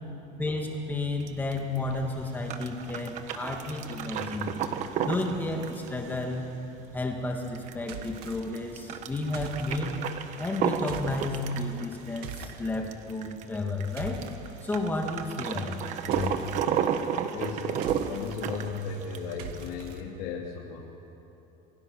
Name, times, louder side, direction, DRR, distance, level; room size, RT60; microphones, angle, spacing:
voice 1, 0.4-4.5 5.0-6.5 6.9-10.0 10.4-14.2 14.6-16.4, left 2 dB, 10° left, 2 dB, 2.0 m, -32 dB
sound 1, 1.2-19.6, right 8 dB, 35° right, 1.2 m, -33 dB
sound 2, 7.9-8.4 9.3-9.8 10.8-11.3 12.2-12.6 13.6-14.4 16.1-16.6 17.7-18.4 19.4-20.0, right 5 dB, 50° right, 2.1 m, -41 dB
voice 2, 17.3-20.9, left 5 dB, 85° left, -2 dB, 3.1 m, -36 dB
28.0 x 21.5 x 6.3 m, 2.9 s
cardioid pair, 180°, 21 cm